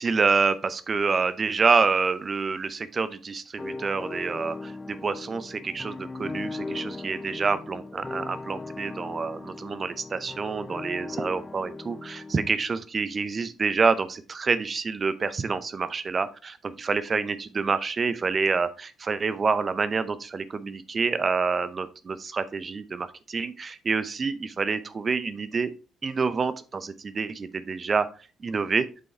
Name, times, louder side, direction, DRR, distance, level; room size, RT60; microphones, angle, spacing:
voice 1, 0.0-25.7 26.0-28.1 28.4-28.9, right 4 dB, 40° right, 13 dB, 0.7 m, -27 dB
sound 1, 3.6-12.5, left 3 dB, 25° left, 0.4 m, -38 dB
7.9 x 5.3 x 3.3 m, 0.34 s
hypercardioid pair, 50°, 0 cm